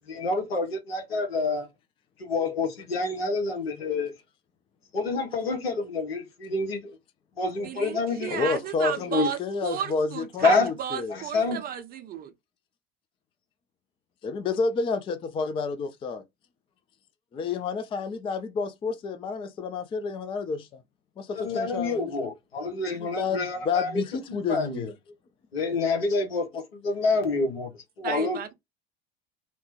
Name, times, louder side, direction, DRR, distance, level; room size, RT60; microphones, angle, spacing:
voice 1, 0.1-1.7 2.2-4.1 4.9-7.0 7.4-8.3 9.1-9.3 10.4-10.7 11.3-11.6 21.3-23.9 24.3-24.9 25.5-27.7 28.0-28.4, left 3 dB, 80° left, 1.0 m, -27 dB
voice 2, 7.6-12.3 28.0-28.5, right 9 dB, 30° right, 0.6 m, -33 dB
voice 3, 8.3-11.2 14.2-16.2 17.3-20.8 21.2-22.3 23.0-24.9, left 4 dB, 20° left, 0.4 m, -30 dB
2.8 x 2.1 x 3.0 m
figure-of-eight pair, 75°, 30 cm